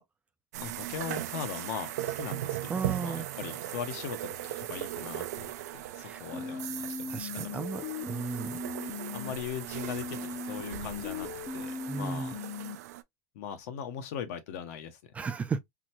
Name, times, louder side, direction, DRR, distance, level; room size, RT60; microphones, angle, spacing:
sound 1, 0.5-13.0, right 14 dB, 75° right, 0.5 m, -38 dB
voice 1, 0.6-5.5 5.9-7.6 9.1-12.3 13.3-15.1, left 8 dB, 65° left, 1.0 m, -40 dB
voice 2, 2.7-3.3 6.0-6.2 7.1-8.6 11.9-12.3 15.1-15.6, right 5 dB, 15° right, 0.3 m, -35 dB
sound 2, 6.3-9.3 9.7-12.8, left 5 dB, 30° left, 0.7 m, -38 dB
3.7 x 2.1 x 2.9 m
supercardioid pair, 140°, 9 cm